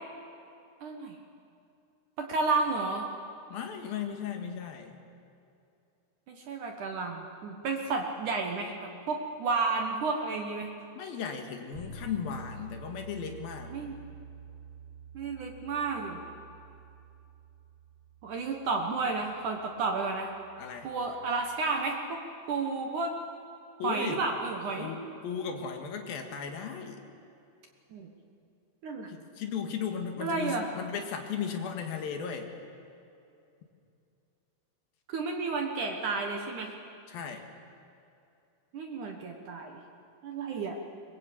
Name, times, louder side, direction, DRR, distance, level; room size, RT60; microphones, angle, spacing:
voice 1, 0.8-1.2 2.2-3.1 6.3-10.7 13.7-14.0 15.1-16.2 18.2-20.3 20.8-22.2 22.5-23.2 23.8-24.9 27.9-28.1 28.8-29.1 30.2-30.7 35.1-36.7 38.7-39.8 40.2-40.8, right 4 dB, 75° right, 3 dB, 1.8 m, -32 dB
voice 2, 3.5-5.0 10.9-13.8 20.6-20.9 23.8-24.2 24.8-27.0 29.1-32.5 37.1-37.5, left 7 dB, 60° left, 4 dB, 2.9 m, -36 dB
Bass guitar, 11.7-21.5, right 4 dB, 20° left, 3.9 m, -49 dB
23.0 x 21.5 x 8.6 m, 2.6 s
omnidirectional pair, 5.7 m